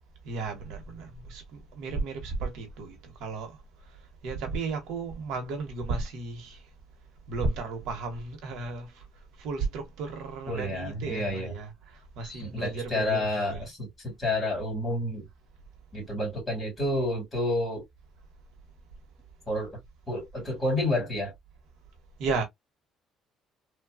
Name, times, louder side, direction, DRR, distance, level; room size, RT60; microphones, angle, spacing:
voice 1, 0.2-3.6 4.2-6.6 7.3-9.0 9.4-13.7 22.2-22.4, right 3 dB, 75° right, 1.0 m, -34 dB
voice 2, 10.5-11.5 12.2-15.2 15.9-17.8 19.5-19.8 20.1-21.3, left 1 dB, 15° left, 2.2 m, -30 dB
3.2 x 2.2 x 2.2 m
cardioid pair, 165°, 0 cm